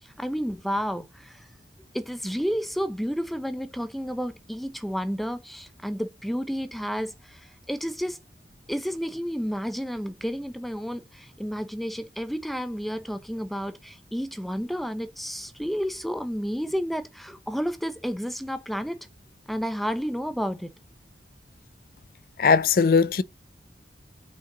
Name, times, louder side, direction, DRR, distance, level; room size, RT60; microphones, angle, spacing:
voice 1, 0.0-1.5 1.9-8.2 8.7-19.1 19.5-20.7, equal, ahead, 0.6 m, -31 dB
voice 2, 22.4-23.2, left 5 dB, 50° left, 0.4 m, -19 dB
5.7 x 4.6 x 3.8 m
head